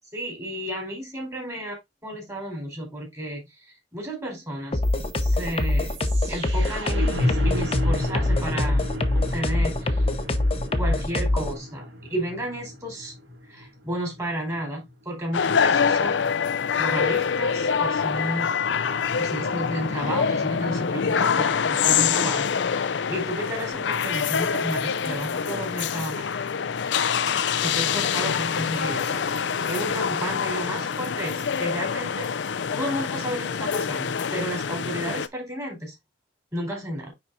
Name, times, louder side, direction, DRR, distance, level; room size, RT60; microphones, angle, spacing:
voice 1, 0.1-1.7 2.0-4.8 5.2-6.0 6.3-8.9 9.1-10.0 10.8-13.1 13.5-16.3 16.8-18.5 19.2-26.3 27.6-36.0 36.5-37.1, right 1 dB, 20° right, 4.3 m, -32 dB
sound 1, 4.7-11.5, left 2 dB, 35° left, 0.9 m, -24 dB
sound 2, 4.8-14.9, left 1 dB, 75° right, 2.0 m, -32 dB
sound 3, 15.3-35.3, left 6 dB, 75° left, 0.5 m, -25 dB
9.7 x 4.4 x 2.5 m
head